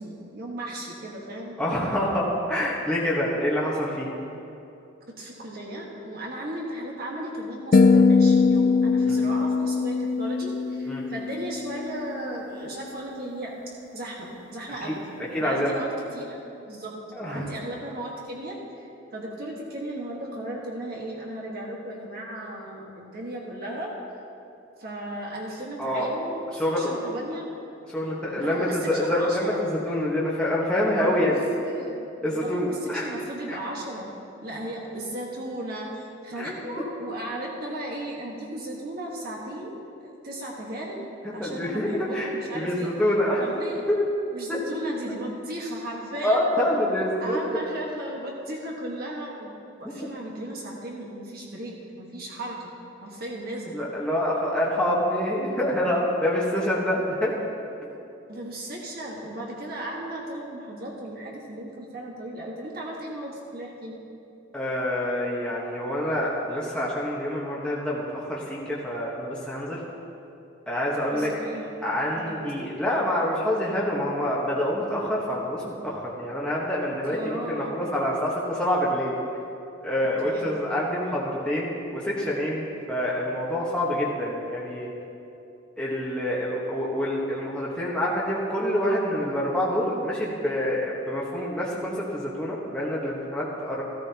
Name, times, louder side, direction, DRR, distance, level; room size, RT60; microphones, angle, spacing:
voice 1, 0.0-1.6 5.2-15.0 15.4-16.4 16.7-18.6 19.1-23.9 24.8-27.4 28.4-29.6 31.0-31.3 31.6-34.1 34.4-39.7 40.0-42.9 43.4-43.8 44.3-46.5 47.2-52.7 53.0-53.8 56.9-57.0 58.3-64.0 71.1-71.9 72.1-72.4 77.1-77.8 80.2-80.5, right 1 dB, 50° right, -2 dB, 1.4 m, -36 dB
voice 2, 1.6-4.1 7.8-8.0 9.1-9.2 10.9-11.0 14.8-14.9 15.3-15.7 17.1-17.5 25.8-26.1 26.6-26.9 27.9-31.4 32.2-33.1 33.5-33.6 36.4-36.5 41.4-43.4 43.9-44.0 44.5-44.6 46.2-47.6 49.8-49.9 53.7-57.3 64.5-69.8 70.7-71.3 71.8-79.2 79.8-84.9 85.8-93.8, left 1 dB, 5° left, -6 dB, 1.2 m, -26 dB
sound 1, 7.7-12.0, left 4 dB, 40° left, 0.3 m, -21 dB
14.0 x 13.5 x 2.9 m, 2.7 s
head